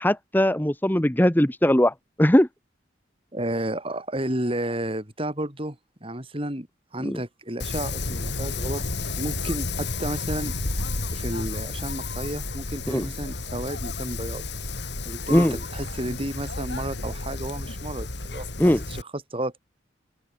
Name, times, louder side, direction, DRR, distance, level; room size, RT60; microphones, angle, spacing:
voice 1, 0.0-2.5 7.0-7.2 12.9-13.1 15.3-15.6 18.6-18.8, equal, 10° left, 1.1 m, -20 dB
voice 2, 3.3-6.7 6.9-10.5 11.1-14.5 15.1-19.6, right 1 dB, 30° right, 5.4 m, -32 dB
Wind, 7.6-19.0, left 3 dB, 60° left, 2.9 m, -31 dB
open air
head